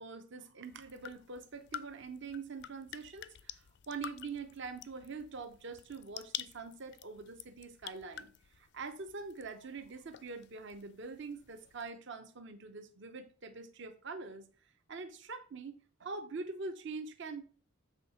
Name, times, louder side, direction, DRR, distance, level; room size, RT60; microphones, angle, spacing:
voice 1, 0.0-14.5 14.9-17.4, right 4 dB, 55° right, 0.7 m, -44 dB
sound 1, 0.6-11.9, left 11 dB, 55° left, 0.4 m, -49 dB
7.3 x 3.6 x 5.5 m
head